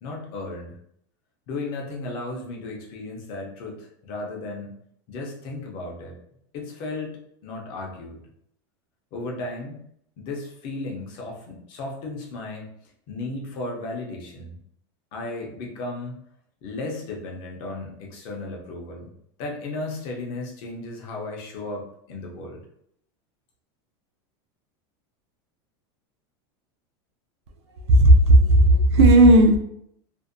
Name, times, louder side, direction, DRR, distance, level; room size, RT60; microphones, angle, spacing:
voice 1, 0.0-0.8 1.5-4.7 5.1-6.2 6.5-8.2 9.1-9.8 10.2-12.7 13.1-14.6 15.1-16.1 16.6-19.1 19.4-22.6, left 2 dB, 35° left, 0 dB, 0.5 m, -35 dB
voice 2, 27.9-29.6, right 1 dB, 90° right, 5 dB, 0.5 m, -13 dB
2.5 x 2.1 x 2.5 m, 0.70 s
supercardioid pair, 175°, 14 cm